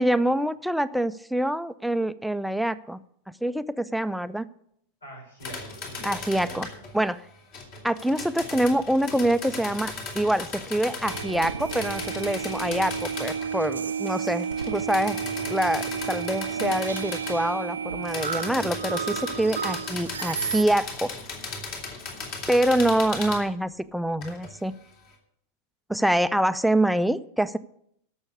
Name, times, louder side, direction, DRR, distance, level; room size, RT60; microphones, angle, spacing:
voice 1, 0.0-3.0 3.4-4.5 6.0-6.7 6.9-7.2 7.8-15.2 15.5-21.1 22.5-24.7 25.9-27.6, right 1 dB, ahead, 14 dB, 0.5 m, -25 dB
voice 2, 5.0-6.8 22.1-22.3, equal, 75° left, 1 dB, 4.8 m, -44 dB
sound 1, 5.4-6.9 7.5-13.7 14.1-17.4 18.0-23.4 24.2-24.5, left 3 dB, 45° left, 3.0 m, -37 dB
sound 2, 11.0-20.6, right 6 dB, 70° right, 0.5 m, -32 dB
12.0 x 7.2 x 8.2 m, 0.72 s
figure-of-eight pair, 90°, 0 cm